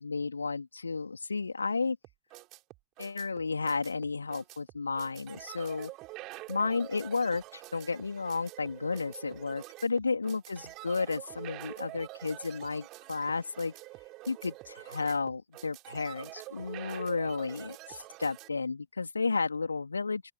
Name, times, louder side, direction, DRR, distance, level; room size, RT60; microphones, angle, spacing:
voice 1, 0.0-2.0 3.0-5.9 6.5-13.7 14.3-20.2, left 4 dB, 75° left, 2.9 m, -32 dB
sound 1, 2.0-18.5, right 20 dB, 40° right, 3.6 m, -46 dB
open air
figure-of-eight pair, 90°, 0 cm